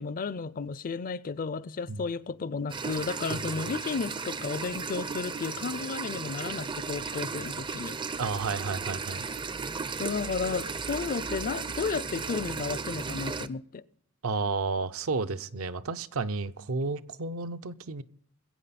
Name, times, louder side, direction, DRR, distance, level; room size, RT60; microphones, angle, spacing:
voice 1, 0.0-8.0 10.0-13.8, left 5 dB, 40° left, 0.4 m, -33 dB
sound 1, 2.7-13.5, right 5 dB, 20° right, 0.4 m, -35 dB
voice 2, 8.2-9.3 14.2-18.0, right 4 dB, 70° right, 0.6 m, -32 dB
21.5 x 8.5 x 4.1 m
head